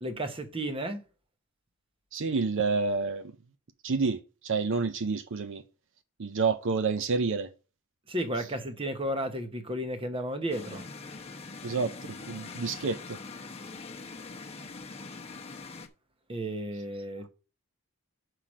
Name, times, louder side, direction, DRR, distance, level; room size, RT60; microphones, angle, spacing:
voice 1, 0.0-1.0 8.1-10.8 16.3-17.3, right 1 dB, 25° right, 1.0 m, -33 dB
voice 2, 2.1-3.3 3.8-5.6 6.2-7.5 11.6-11.9 12.3-13.0, right 4 dB, 60° right, 0.6 m, -28 dB
sound 1, 10.5-15.9, left 4 dB, 30° left, 0.8 m, -43 dB
5.8 x 4.9 x 6.0 m
head